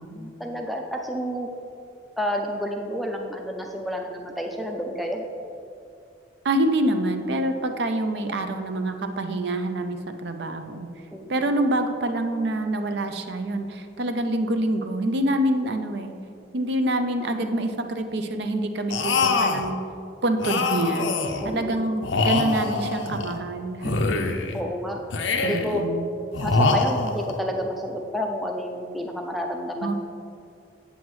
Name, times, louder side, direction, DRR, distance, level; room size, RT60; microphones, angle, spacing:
voice 1, 0.0-1.5 2.2-5.2 11.1-11.4 21.4-21.8 24.5-25.0 25.4-25.9 26.4-30.0, equal, ahead, 1 dB, 0.4 m, -30 dB
voice 2, 6.4-10.9 11.3-16.1 16.5-19.8 20.2-21.1 21.4-24.0 25.4-26.1 29.8-30.0, right 1 dB, 60° right, 7 dB, 0.5 m, -26 dB
sound 1, 18.9-19.7 20.4-21.5 22.0-23.4 23.8-24.6 25.1-25.8 26.3-27.4, left 3 dB, 80° left, 0.6 m, -24 dB
8.2 x 7.8 x 3.1 m, 2.5 s
head